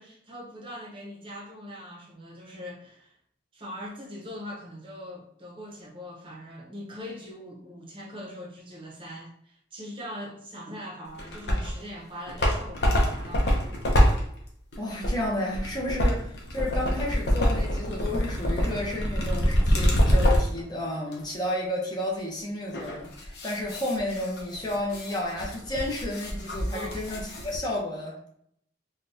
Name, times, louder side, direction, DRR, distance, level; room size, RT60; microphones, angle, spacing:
voice 1, 0.0-3.2 3.5-13.5 26.7-27.0, equal, 30° right, 0.8 m, -41 dB
sound 1, 11.1-11.8 12.1-20.6 21.1-21.2 22.7-27.6, equal, 60° left, 0.7 m, -25 dB
voice 2, 14.8-28.3, left 1 dB, 20° left, 0.8 m, -32 dB
3.7 x 2.3 x 2.6 m
head